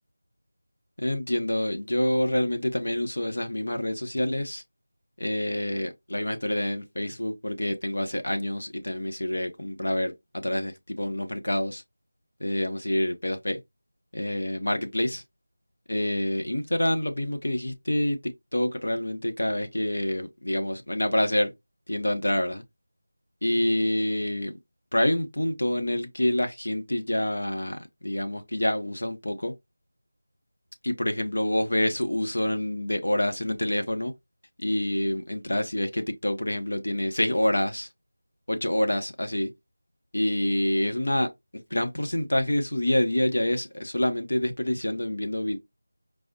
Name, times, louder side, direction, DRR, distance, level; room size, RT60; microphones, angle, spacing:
voice 1, 1.0-4.6 5.2-11.8 12.4-13.6 14.1-15.2 15.9-21.5 21.9-22.6 23.4-24.6 24.9-29.5 30.8-34.1 34.6-37.9 38.5-39.5 40.1-41.3 41.7-45.6, left 1 dB, 80° left, 0.8 m, -27 dB
4.8 x 2.0 x 2.7 m
figure-of-eight pair, 175°, 0 cm